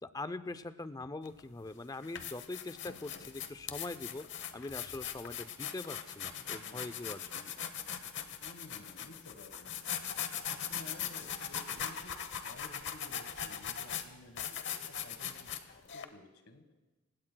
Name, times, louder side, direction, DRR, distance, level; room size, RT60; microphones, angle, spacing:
voice 1, 0.0-7.5, left 2 dB, 15° left, 12 dB, 0.4 m, -43 dB
sound 1, 1.2-1.4 1.9-16.0, left 8 dB, 55° left, 0.9 m, -40 dB
voice 2, 6.3-6.9 8.4-9.7 10.4-14.4 14.7-16.7, left 2 dB, 80° left, 7 dB, 1.4 m, -54 dB
27.5 x 16.5 x 2.2 m, 1.2 s
head